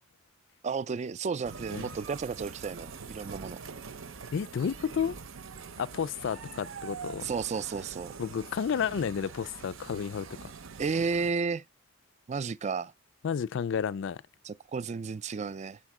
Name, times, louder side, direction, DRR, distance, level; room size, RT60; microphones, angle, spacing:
voice 1, 0.6-3.6 7.2-8.1 10.8-11.6 12.3-12.9 14.4-15.8, right 5 dB, 35° right, 0.4 m, -32 dB
sound 1, 1.4-11.3, right 5 dB, 70° right, 0.7 m, -44 dB
voice 2, 4.3-5.2 5.8-7.3 8.2-10.5 13.2-14.2, left 7 dB, 65° left, 0.4 m, -31 dB
7.5 x 4.3 x 6.0 m
head